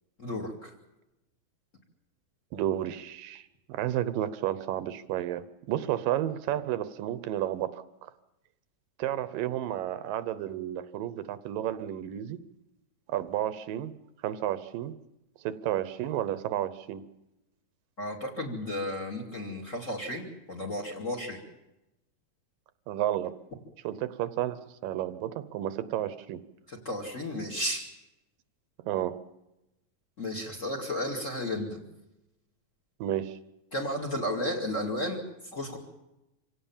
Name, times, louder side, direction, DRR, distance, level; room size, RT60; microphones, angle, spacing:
voice 1, 0.2-0.7 18.0-21.4 26.7-27.9 30.2-31.8 33.7-35.2 35.5-35.8, left 1 dB, 25° left, 4 dB, 2.2 m, -33 dB
voice 2, 2.5-8.1 9.0-12.4 13.1-13.9 14.2-15.0 15.4-17.0 22.9-23.3 23.8-26.4 28.8-29.2 33.0-33.4, right 12 dB, 80° right, 14 dB, 2.5 m, -32 dB
25.5 x 17.0 x 7.2 m, 0.93 s
omnidirectional pair, 4.0 m